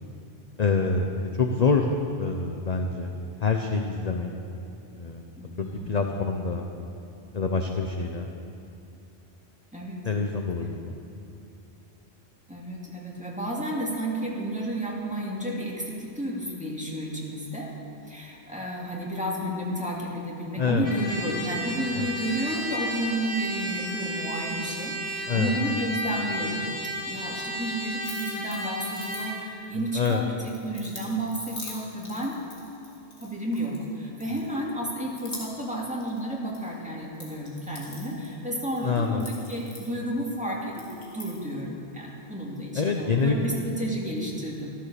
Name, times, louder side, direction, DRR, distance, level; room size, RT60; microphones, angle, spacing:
voice 1, 0.6-1.9 2.2-3.1 3.4-4.3 4.9-5.2 5.6-6.7 7.3-8.3 10.0-11.0 20.6-20.9 21.9-22.1 25.3-25.5 29.9-30.2 38.8-39.3 42.7-43.5, left 4 dB, 40° left, 3 dB, 0.8 m, -26 dB
voice 2, 5.4-5.9 9.7-10.0 12.5-17.7 18.1-26.6 27.1-32.4 33.2-40.9 41.1-44.7, right 1 dB, 5° right, -4 dB, 2.4 m, -31 dB
Trumpet, 20.8-29.4, equal, 70° left, 4.0 m, -33 dB
sound 1, 28.0-29.7 30.1-33.9 34.2-34.8 35.1-35.8 36.0-36.7 37.0-40.3 40.7-41.5, left 2 dB, 85° left, 2.7 m, -44 dB
14.0 x 13.0 x 6.9 m, 2.7 s
omnidirectional pair, 1.1 m